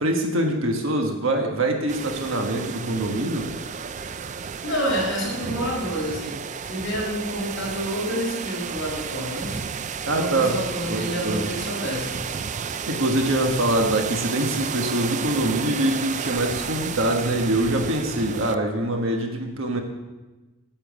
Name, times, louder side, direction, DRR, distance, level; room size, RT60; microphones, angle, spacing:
voice 1, 0.0-3.5 10.1-11.5 12.8-19.8, right 1 dB, 65° right, 3 dB, 1.3 m, -24 dB
sound 1, 1.9-18.5, right 6 dB, 35° right, 0.4 m, -32 dB
voice 2, 4.6-6.3 6.7-9.6 10.1-12.1, equal, 60° left, -3 dB, 4.5 m, -28 dB
9.0 x 7.0 x 8.2 m, 1.1 s
head